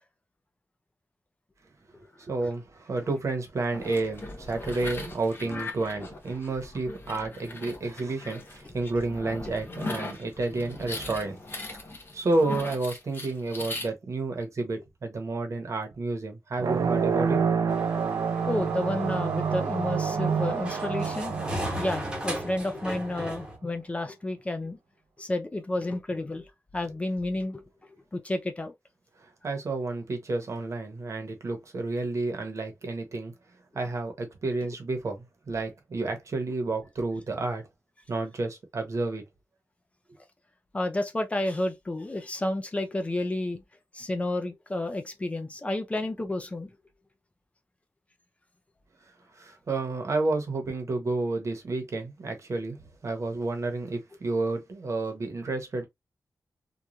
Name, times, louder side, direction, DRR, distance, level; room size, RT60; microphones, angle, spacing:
voice 1, 2.3-11.4 12.1-17.4 29.4-33.3 33.7-37.6 38.1-39.2 49.4-52.8 53.0-55.8, right 3 dB, 55° right, 0.9 m, -30 dB
sound 1, 3.7-13.9, left 2 dB, 40° left, 0.8 m, -39 dB
sound 2, 16.6-22.7, right 6 dB, 80° right, 0.4 m, -28 dB
sound 3, 17.7-23.6, right 1 dB, 15° right, 0.9 m, -36 dB
voice 2, 18.2-21.3 21.8-24.8 25.2-26.5 26.7-27.6 28.1-28.7 40.7-43.6 43.9-46.7, left 1 dB, 20° left, 0.4 m, -31 dB
3.0 x 2.3 x 2.4 m
wide cardioid pair, 130°, 6 cm